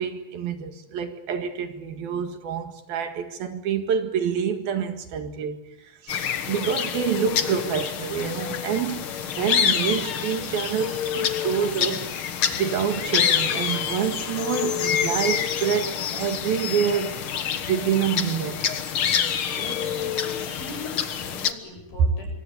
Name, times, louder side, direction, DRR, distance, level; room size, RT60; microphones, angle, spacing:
voice 1, 0.0-12.2 12.6-17.3 17.7-18.7, right 8 dB, 70° right, 3.5 m, -27 dB
sound 1, 6.1-21.5, left 8 dB, 90° left, 1.1 m, -27 dB
voice 2, 19.5-22.3, left 2 dB, 60° left, 9.9 m, -41 dB
27.0 x 25.0 x 8.4 m
omnidirectional pair, 4.7 m